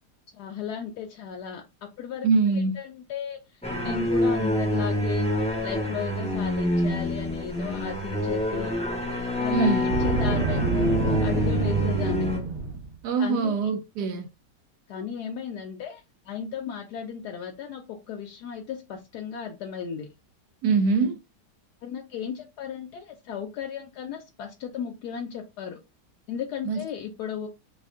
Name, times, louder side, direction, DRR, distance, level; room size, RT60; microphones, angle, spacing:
voice 1, 0.3-2.3 2.5-3.4 3.8-5.3 5.6-8.8 9.4-9.8 10.0-12.3 13.2-13.7 14.9-20.1 21.8-25.8 26.3-27.5, left 8 dB, 75° left, 1.1 m, -35 dB
voice 2, 2.2-2.8 9.5-9.9 13.0-14.3 20.6-21.2 26.6-26.8, right 4 dB, 75° right, 1.2 m, -23 dB
sound 1, 3.6-12.4, left 1 dB, 10° left, 0.4 m, -26 dB
Boom, 9.8-12.9, right 4 dB, 45° right, 0.8 m, -27 dB
2.9 x 2.5 x 3.5 m
omnidirectional pair, 1.8 m